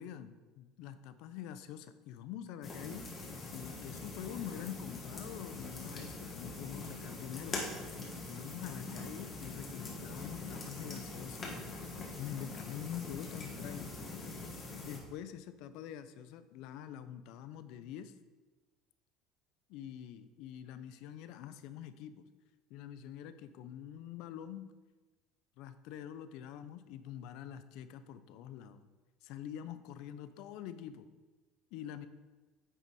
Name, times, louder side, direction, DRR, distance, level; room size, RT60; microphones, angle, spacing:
voice 1, 0.0-7.6 8.3-11.5 12.2-13.9 14.8-18.1 19.7-22.3 22.7-24.7 25.6-28.9 29.2-31.1 31.7-32.1, left 10 dB, 70° left, 12 dB, 0.5 m, -46 dB
sound 1, 2.6-15.0, left 3 dB, 30° left, 1.6 m, -43 dB
9.1 x 4.1 x 4.7 m, 1.2 s
supercardioid pair, 110°, 0 cm